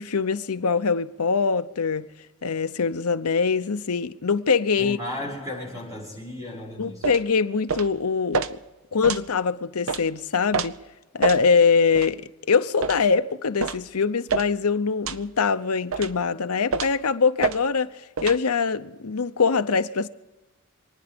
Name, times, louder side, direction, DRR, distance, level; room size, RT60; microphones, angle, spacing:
voice 1, 0.0-2.0 2.4-5.0 6.8-8.6 8.9-10.8 11.1-12.2 12.5-20.1, left 5 dB, 90° left, 0.8 m, -23 dB
voice 2, 4.8-7.1, left 1 dB, 15° right, 5.5 m, -35 dB
sound 1, 7.0-7.2 7.7-7.9 8.3-8.5 9.0-9.2 9.9-10.0 10.5-10.7 11.2-11.4 11.9-12.1 12.8-13.0 13.6-13.8 14.3-14.5 15.0-15.2 15.9-16.2 16.7-17.0 17.4-17.6 18.2-18.4, right 5 dB, 70° right, 0.7 m, -27 dB
27.5 x 10.0 x 5.2 m
head